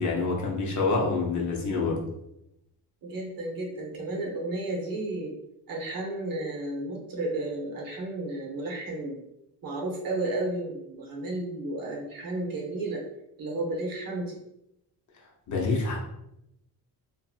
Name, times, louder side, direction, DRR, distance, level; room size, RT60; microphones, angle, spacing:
voice 1, 0.0-2.0 15.5-16.0, left 3 dB, 45° left, -2 dB, 0.7 m, -26 dB
voice 2, 3.0-5.3 5.7-9.2 9.6-13.0 13.4-14.4, right 2 dB, 55° right, -1 dB, 0.8 m, -32 dB
2.7 x 2.6 x 2.4 m, 0.83 s
cardioid pair, 130°, 41 cm